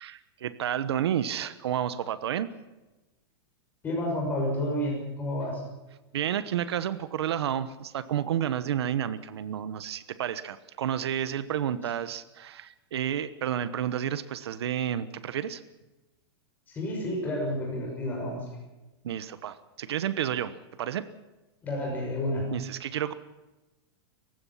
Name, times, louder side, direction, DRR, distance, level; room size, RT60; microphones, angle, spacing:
voice 1, 0.0-2.5 6.1-15.6 19.0-21.1 22.5-23.1, right 10 dB, 80° right, 14 dB, 1.2 m, -31 dB
voice 2, 3.8-5.6 16.7-18.4 21.6-22.4, left 1 dB, 15° left, -1 dB, 6.3 m, -30 dB
29.5 x 16.0 x 5.8 m, 1.1 s
supercardioid pair, 175°, 13 cm